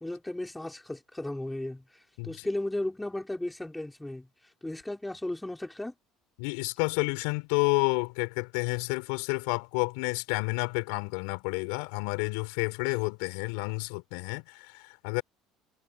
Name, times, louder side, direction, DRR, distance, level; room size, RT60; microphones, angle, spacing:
voice 1, 0.0-4.3 4.6-5.9, left 1 dB, 10° left, 4.7 m, -35 dB
voice 2, 6.4-15.2, left 33 dB, 80° left, 6.7 m, -30 dB
supercardioid pair, 85°, 0 cm